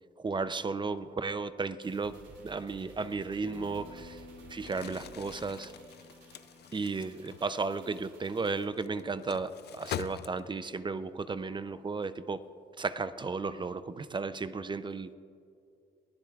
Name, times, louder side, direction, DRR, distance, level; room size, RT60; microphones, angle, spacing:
voice 1, 0.2-2.2 2.4-4.2 4.5-5.7 6.7-12.4 12.8-15.2, right 4 dB, 25° right, 13 dB, 0.5 m, -34 dB
sound 1, 1.8-10.4 10.7-10.8, right 3 dB, 70° right, 2.8 m, -57 dB
Acoustic guitar, 3.4-8.6, left 4 dB, 85° left, 2.9 m, -54 dB
Crumpling crinkling, 4.6-10.8, left 11 dB, 55° left, 0.4 m, -44 dB
22.5 x 16.5 x 2.4 m, 2.5 s
cardioid pair, 90°, 20 cm